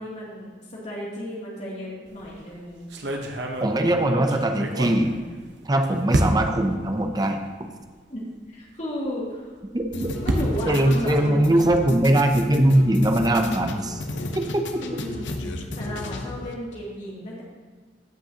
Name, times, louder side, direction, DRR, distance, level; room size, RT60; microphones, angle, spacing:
voice 1, 0.0-2.9 8.1-9.5 10.2-11.9 14.8-17.4, equal, 40° left, -6 dB, 2.6 m, -34 dB
sound 1, 2.1-2.4 2.9-5.7 6.1-6.7 7.4-7.5 7.8-7.9 9.6-11.9, right 1 dB, 70° right, 0.9 m, -29 dB
voice 2, 3.6-5.2 5.6-7.7 9.7-10.2 10.7-14.0 14.4-14.8, right 1 dB, 20° right, 5 dB, 0.7 m, -21 dB
sound 2, 9.9-16.5, left 2 dB, 85° left, 0.8 m, -34 dB
15.5 x 6.0 x 2.9 m, 1.5 s
head